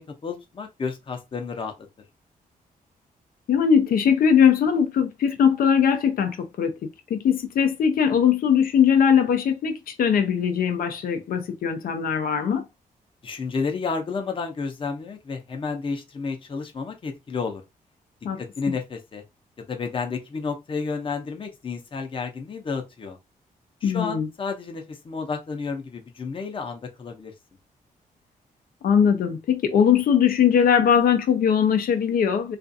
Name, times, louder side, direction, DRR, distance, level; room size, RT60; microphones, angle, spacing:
voice 1, 0.0-1.7 13.2-17.6 18.4-19.2 19.7-23.2 23.8-27.3, left 5 dB, 35° left, 0.6 m, -31 dB
voice 2, 3.5-12.6 18.2-18.4 23.8-24.3 28.8-32.6, left 7 dB, 75° left, 0.5 m, -20 dB
2.4 x 2.3 x 2.6 m
cardioid pair, 115°, 15 cm